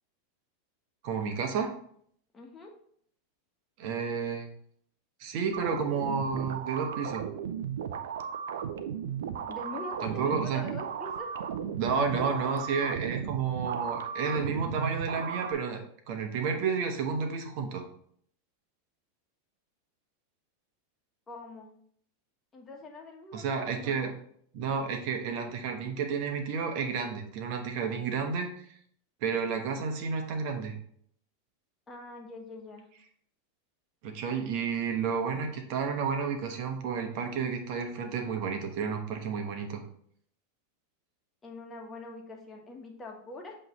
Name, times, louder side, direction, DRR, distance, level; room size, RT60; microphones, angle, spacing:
voice 1, 1.0-1.7 3.8-4.5 5.2-7.3 10.0-10.6 11.7-17.8 23.3-24.1 24.5-28.8 29.2-30.8 34.0-39.8, right 5 dB, 55° right, 5 dB, 1.1 m, -31 dB
voice 2, 2.3-2.7 9.5-11.4 21.3-21.7 22.5-24.1 31.9-32.9 41.4-43.6, left 2 dB, 20° left, 1 dB, 1.4 m, -44 dB
sound 1, 5.5-15.5, right 8 dB, 80° right, 0.5 m, -35 dB
7.7 x 3.2 x 4.0 m, 0.64 s
hypercardioid pair, 110°, 0 cm